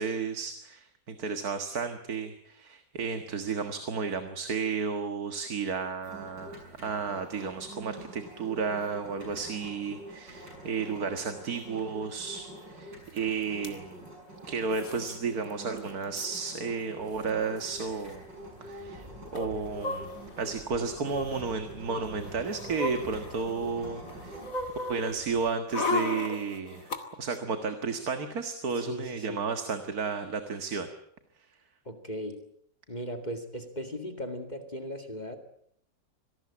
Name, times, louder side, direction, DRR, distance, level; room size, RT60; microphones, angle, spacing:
voice 1, 0.0-14.1 14.5-18.2 18.6-19.1 19.3-24.4 24.9-30.9, right 5 dB, 55° right, 7 dB, 2.1 m, -33 dB
sound 1, 6.0-24.5, right 1 dB, 85° right, 8.1 m, -46 dB
sound 2, 13.2-13.3 13.4-13.7 14.7-15.2 15.5-15.6 15.8-16.4 17.2-17.3 17.6-17.8 19.3-20.5 21.1-21.4 22.1-23.7 24.1-27.0 27.3-27.4, left 3 dB, 50° left, 2.7 m, -35 dB
sound 3, 17.0-25.5, right 1 dB, 25° right, 3.4 m, -50 dB
voice 2, 28.7-29.4 31.9-32.4 32.9-35.4, equal, 25° left, 6 dB, 2.3 m, -37 dB
26.0 x 18.5 x 8.6 m, 0.70 s
omnidirectional pair, 1.9 m